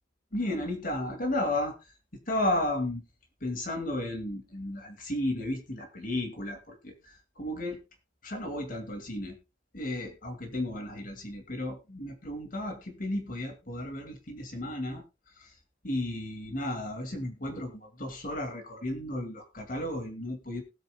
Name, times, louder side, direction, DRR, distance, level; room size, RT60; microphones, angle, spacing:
voice 1, 0.3-1.7 2.3-3.0 3.4-7.8 8.2-9.3 9.7-15.0 15.4-15.5 15.8-20.6, left 1 dB, 45° left, 4 dB, 2.2 m, -33 dB
20.0 x 8.9 x 2.3 m, 0.27 s
head